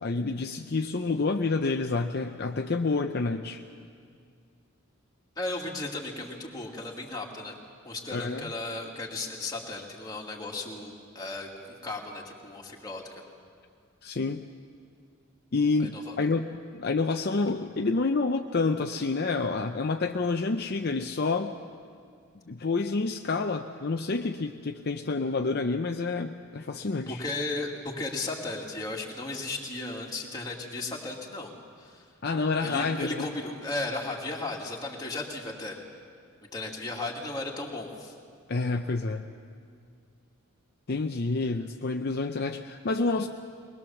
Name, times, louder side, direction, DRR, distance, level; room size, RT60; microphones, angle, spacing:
voice 1, 0.0-3.6 8.1-8.4 14.0-14.4 15.5-16.4 16.7-21.6 22.5-27.2 32.2-33.3 38.5-39.2 40.9-43.3, left 3 dB, 50° left, 4 dB, 0.6 m, -28 dB
voice 2, 5.4-7.6 7.8-13.2 15.8-16.3 27.1-31.5 31.8-32.0 32.6-35.8 36.5-38.1, left 2 dB, 20° left, -2 dB, 2.4 m, -35 dB
22.5 x 20.5 x 7.1 m, 2.2 s
head